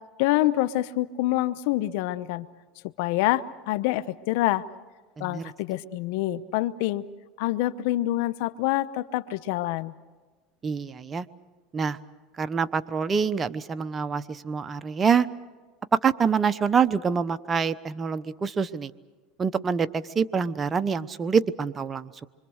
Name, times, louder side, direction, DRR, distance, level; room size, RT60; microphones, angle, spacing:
voice 1, 0.2-2.5 3.0-4.6 5.2-7.0 7.4-9.9, left 16 dB, 70° left, 14 dB, 0.9 m, -26 dB
voice 2, 5.2-5.5 10.6-11.3 11.7-12.0 12.4-15.3 15.9-18.9 19.4-22.3, right 6 dB, 25° right, 13 dB, 0.9 m, -26 dB
26.0 x 25.0 x 6.5 m, 1.3 s
supercardioid pair, 110°, 0 cm